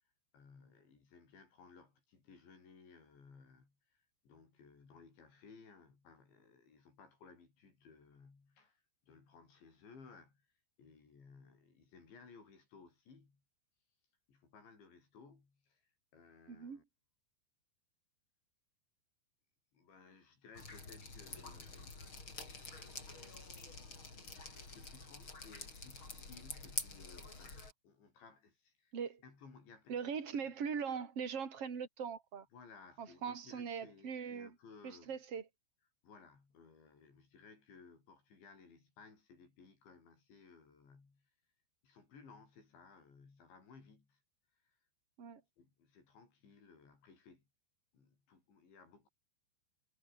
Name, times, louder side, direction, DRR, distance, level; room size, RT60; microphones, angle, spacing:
voice 1, 0.3-10.4 10.8-13.4 14.3-15.8 16.1-16.8 19.7-22.4 23.6-24.1 24.6-28.9 29.2-30.2 32.5-35.1 36.0-41.3 41.8-44.2 44.6-44.8 45.6-47.4 47.9-49.1, left 5 dB, 65° left, 9.5 m, -60 dB
voice 2, 16.5-16.8 28.9-29.2 29.9-32.5 33.0-34.5 34.8-35.4 45.2-45.4, right 6 dB, 30° right, 4.2 m, -41 dB
Drip, 20.5-27.7, left 3 dB, 25° left, 5.9 m, -47 dB
omnidirectional pair, 5.5 m